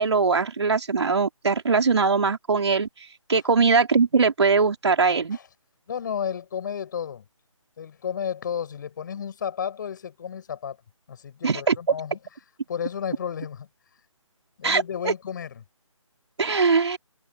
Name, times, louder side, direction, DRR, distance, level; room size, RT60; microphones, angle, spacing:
voice 1, 0.0-2.9 3.3-5.4 11.4-11.8 14.6-15.1 16.4-17.0, right 4 dB, 55° right, 3.3 m, -21 dB
voice 2, 5.9-7.2 7.8-10.8 11.1-12.2 12.7-13.7 14.6-15.6, left 8 dB, 35° left, 6.2 m, -32 dB
figure-of-eight pair, 155°, 17 cm